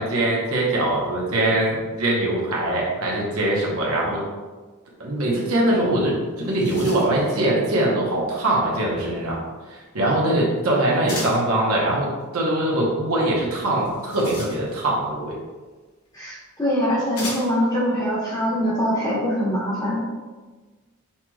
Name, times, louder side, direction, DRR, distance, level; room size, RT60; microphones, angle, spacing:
voice 1, 0.0-4.2 5.0-9.4 9.7-15.4, right 1 dB, 75° right, -3 dB, 1.0 m, -22 dB
sound 1, 5.9-6.0 6.3-7.3 11.1-11.5 13.8-15.0 16.1-16.2 17.1-17.7, left 2 dB, 90° left, 1.1 m, -35 dB
voice 2, 16.1-20.0, equal, 15° left, -7 dB, 1.1 m, -23 dB
5.7 x 3.1 x 2.3 m, 1.3 s
head